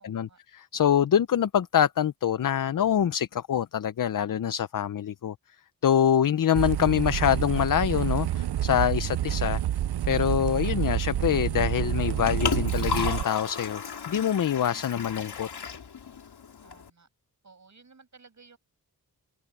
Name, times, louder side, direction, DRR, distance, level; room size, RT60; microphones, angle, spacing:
voice 1, 0.0-0.4 16.6-17.1 17.4-18.6, right 4 dB, 45° right, 7.9 m, -56 dB
voice 2, 0.5-5.3 5.8-9.6 10.1-13.8 14.1-15.5, left 9 dB, 60° left, 0.6 m, -25 dB
sound 1, 6.6-13.2, right 11 dB, 85° right, 0.6 m, -28 dB
Liquid, 11.9-16.9, left 6 dB, 85° left, 3.0 m, -35 dB
wide cardioid pair, 150°, 38 cm